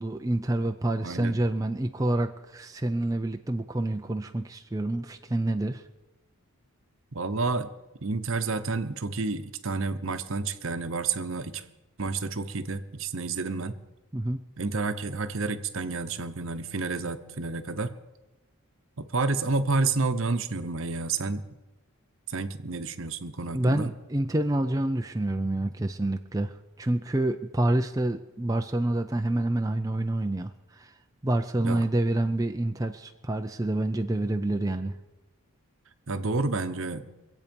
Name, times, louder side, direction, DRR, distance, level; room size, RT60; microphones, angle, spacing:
voice 1, 0.0-5.8 14.1-14.4 23.5-26.5 26.8-30.5 30.8-30.9 31.2-34.9, right 1 dB, 15° right, 5 dB, 0.4 m, -27 dB
voice 2, 1.0-1.4 7.1-7.7 8.0-11.6 12.0-13.8 14.6-17.9 19.0-21.5 22.3-23.9 31.6-31.9 36.1-37.1, right 3 dB, 60° right, 10 dB, 0.8 m, -30 dB
24.5 x 8.3 x 5.3 m, 1.1 s
head